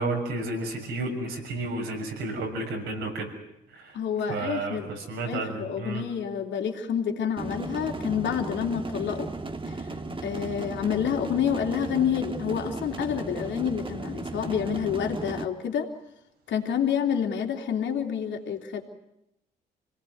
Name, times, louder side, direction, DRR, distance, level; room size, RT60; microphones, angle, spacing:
voice 1, 0.0-3.3 3.7-4.0 4.3-6.0, right 2 dB, 80° right, 1 dB, 6.8 m, -31 dB
voice 2, 3.9-4.9 5.3-9.3 9.8-9.9 10.2-15.9 16.5-18.8, left 8 dB, 70° left, 3 dB, 3.3 m, -28 dB
sound 1, 7.4-15.4, right 3 dB, 25° right, 1.8 m, -35 dB
26.5 x 18.5 x 9.4 m, 0.84 s
hypercardioid pair, 55°, 20 cm